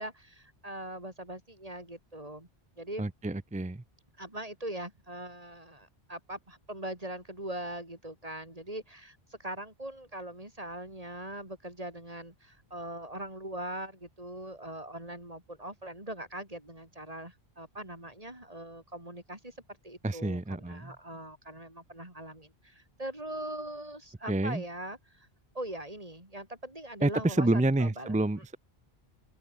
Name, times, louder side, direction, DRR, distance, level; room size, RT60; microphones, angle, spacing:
voice 1, 0.0-2.5 2.8-3.1 4.2-19.5 19.8-25.3 25.5-28.2, right 1 dB, 35° right, 5.3 m, -41 dB
voice 2, 3.0-3.8 20.0-20.9 24.3-24.6 27.0-28.6, right 2 dB, 10° right, 0.3 m, -28 dB
open air
omnidirectional pair, 1.1 m